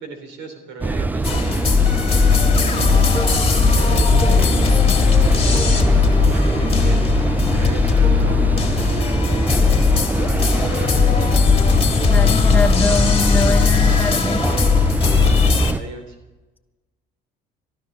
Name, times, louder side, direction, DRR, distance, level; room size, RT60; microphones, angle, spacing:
voice 1, 0.0-2.8 3.7-4.9 5.4-11.3 15.1-16.2, right 4 dB, 75° right, 6 dB, 3.2 m, -37 dB
sound 1, 0.8-15.8, right 3 dB, 10° right, 0.4 m, -23 dB
sound 2, 1.2-15.7, left 6 dB, 30° left, 1.7 m, -17 dB
sound 3, 2.4-12.3, right 3 dB, 40° right, 2.7 m, -35 dB
voice 2, 4.2-5.0 12.1-14.4, left 3 dB, 10° left, 5 dB, 1.2 m, -24 dB
13.0 x 12.5 x 6.1 m, 1.1 s
supercardioid pair, 90°, 20 cm